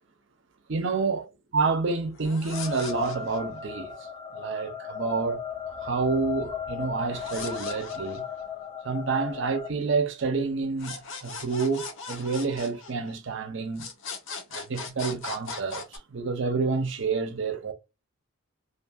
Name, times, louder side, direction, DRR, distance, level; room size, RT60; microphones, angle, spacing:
voice 1, 0.7-1.3 1.5-3.9 4.3-5.4 5.8-8.2 8.8-13.9 14.5-17.7, right 4 dB, 55° right, 0.6 m, -28 dB
sound 1, 2.1-3.6 7.1-8.7 10.8-13.4 13.8-16.0, left 4 dB, 60° left, 0.6 m, -39 dB
sound 2, 2.5-9.7, left 8 dB, 25° left, 0.3 m, -37 dB
2.6 x 2.2 x 2.6 m
head